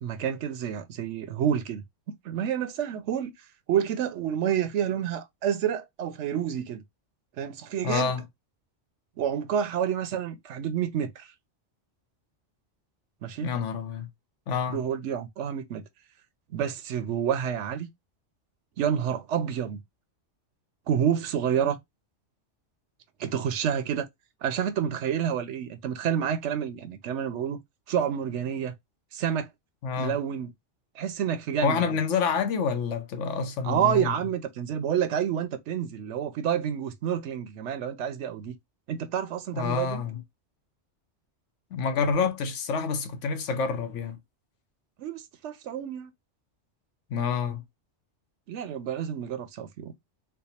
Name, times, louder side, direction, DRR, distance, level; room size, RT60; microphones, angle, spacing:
voice 1, 0.0-1.8 2.2-3.3 3.7-6.8 7.4-8.1 9.2-11.3 13.2-13.5 14.7-15.8 16.5-17.9 18.8-19.8 20.9-21.8 23.2-24.1 24.4-27.6 27.9-28.7 29.1-29.5 30.0-30.5 31.0-31.8 33.6-38.5 38.9-40.0 45.0-46.1 48.5-49.9, right 9 dB, 75° right, 0.9 m, -29 dB
voice 2, 7.8-8.2 13.4-14.1 14.5-14.8 29.8-30.2 31.6-34.2 39.5-40.2 41.7-44.2 47.1-47.6, left 6 dB, 80° left, 1.0 m, -28 dB
3.4 x 2.0 x 4.1 m
omnidirectional pair, 1.3 m